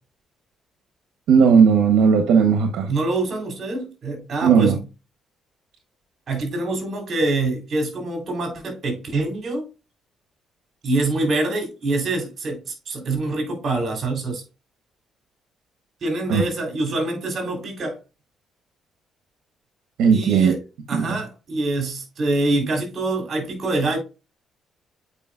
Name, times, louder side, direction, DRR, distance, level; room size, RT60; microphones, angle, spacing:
voice 1, 1.3-2.9 4.4-4.7 16.3-16.4 20.0-20.5 20.9-21.1, right 6 dB, 85° right, 1.1 m, -16 dB
voice 2, 2.9-4.8 6.3-9.7 10.8-14.4 16.0-18.0 20.1-20.6 20.9-24.0, right 2 dB, 50° right, 3.6 m, -25 dB
8.3 x 5.0 x 2.5 m
cardioid pair, 90°, 0 cm